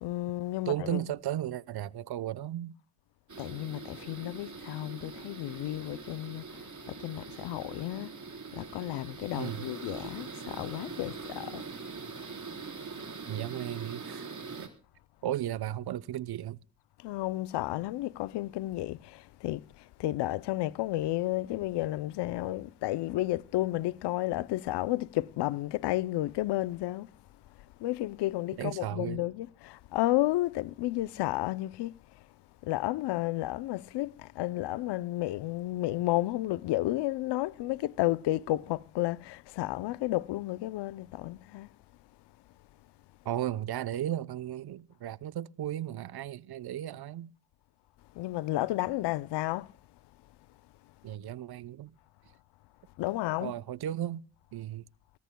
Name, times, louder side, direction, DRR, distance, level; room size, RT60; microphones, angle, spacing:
voice 1, 0.0-1.0 3.4-8.1 8.5-11.7 17.0-27.1 27.6-32.3 32.6-41.7 48.1-49.7 53.0-53.5, left 16 dB, 85° left, 0.6 m, -32 dB
voice 2, 0.7-2.8 9.4-9.6 13.3-14.3 14.6-14.7 15.2-16.6 28.6-29.2 43.2-47.3 51.0-51.9 53.4-54.2 54.5-54.8, right 12 dB, 70° right, 0.8 m, -35 dB
sound 1, 3.3-14.7, right 4 dB, 45° right, 4.0 m, -43 dB
23.5 x 18.0 x 2.2 m
supercardioid pair, 50°, 40 cm